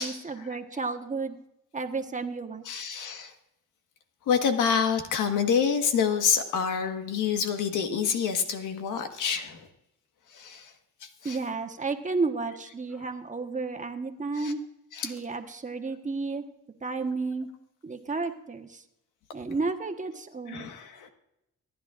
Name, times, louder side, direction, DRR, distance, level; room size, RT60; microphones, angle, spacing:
voice 1, 0.0-1.4 1.7-2.9 11.2-14.6 15.0-16.5 16.8-17.5 17.8-18.8 19.3-20.7, right 3 dB, 25° right, 6 dB, 1.2 m, -32 dB
voice 2, 2.6-3.3 4.3-9.7 10.3-10.7 11.0-11.4 14.4-14.5 14.9-15.1 20.5-21.1, left 7 dB, 85° left, 6 dB, 1.6 m, -27 dB
26.0 x 10.5 x 2.5 m, 0.88 s
cardioid pair, 90°, 30 cm